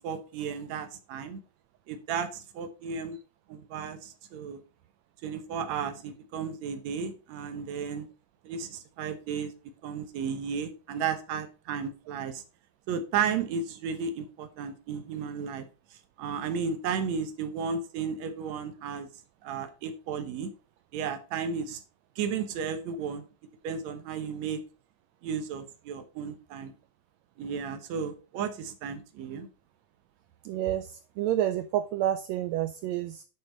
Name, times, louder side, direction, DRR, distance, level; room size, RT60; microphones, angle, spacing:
voice 1, 0.0-1.4 1.9-3.2 3.5-4.6 5.2-8.1 8.4-9.5 9.8-12.4 12.9-15.7 16.2-19.1 19.4-20.5 20.9-21.8 22.2-23.2 23.6-24.6 25.2-26.7 27.4-29.5, right 6 dB, 70° right, 8 dB, 2.1 m, -33 dB
voice 2, 30.4-33.2, right 12 dB, 85° right, 11 dB, 1.5 m, -29 dB
9.1 x 6.6 x 3.9 m, 0.35 s
omnidirectional pair, 3.6 m